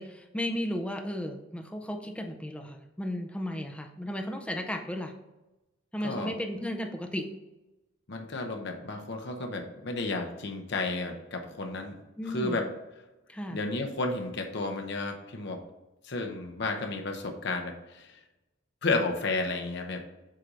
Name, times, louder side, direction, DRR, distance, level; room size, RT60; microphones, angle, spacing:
voice 1, 0.0-5.1 5.9-7.3 12.2-12.6 13.3-13.6, left 1 dB, 5° left, 3 dB, 0.5 m, -34 dB
voice 2, 8.1-12.0 12.3-12.6 13.5-15.6 16.0-18.2 18.8-20.0, left 3 dB, 60° left, 4 dB, 0.8 m, -32 dB
7.6 x 2.7 x 4.9 m, 1.0 s
head